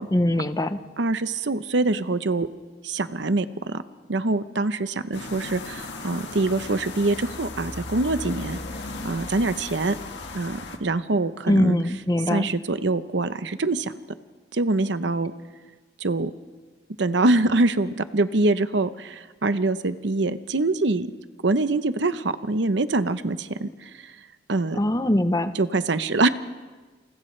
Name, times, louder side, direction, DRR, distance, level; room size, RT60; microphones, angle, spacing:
voice 1, 0.1-0.8 11.5-12.5 24.8-25.5, left 1 dB, 20° left, 10 dB, 0.8 m, -22 dB
voice 2, 1.0-2.5 2.8-3.8 4.1-8.6 9.0-10.0 10.3-11.8 12.3-13.9 14.5-15.3 16.0-16.3 17.0-21.1 21.4-24.1 24.5-24.8 25.5-26.3, right 2 dB, 70° right, 12 dB, 0.8 m, -24 dB
sound 1, 5.1-10.8, left 3 dB, 65° left, 1.8 m, -36 dB
28.5 x 28.0 x 3.3 m, 1.3 s
head